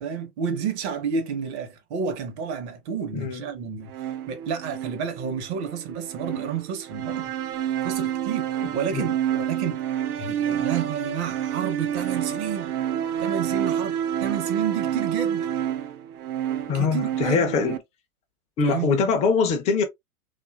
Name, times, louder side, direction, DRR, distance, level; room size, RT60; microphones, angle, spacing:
voice 1, 0.0-3.9 4.3-7.3 7.8-9.8 10.2-12.7 13.2-15.5 16.7-17.6 18.6-18.9, right 7 dB, 50° right, 0.9 m, -30 dB
voice 2, 3.1-3.4 8.9-9.1 16.7-17.8 18.6-19.8, left 5 dB, 15° left, 0.4 m, -23 dB
sound 1, 3.9-17.8, right 10 dB, 80° right, 0.6 m, -29 dB
2.6 x 2.5 x 2.2 m
hypercardioid pair, 110°, 45 cm